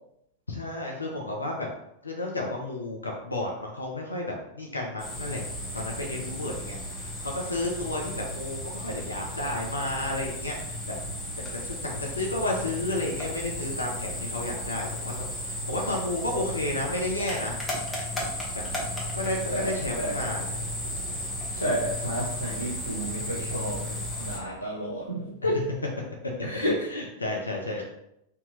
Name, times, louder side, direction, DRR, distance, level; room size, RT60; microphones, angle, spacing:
voice 1, 0.5-1.7 2.0-10.7 11.6-15.1 15.4-17.6 18.5-18.6 19.1-20.5 20.8-21.0 26.9-27.8, left 2 dB, 80° left, -1 dB, 0.6 m, -32 dB
sound 1, 5.0-24.4, left 1 dB, 15° left, 1.1 m, -34 dB
voice 2, 19.5-20.2 21.5-25.6 26.4-26.9, equal, 85° right, -2 dB, 0.7 m, -31 dB
3.6 x 2.8 x 2.8 m, 0.79 s
figure-of-eight pair, 90°, 0 cm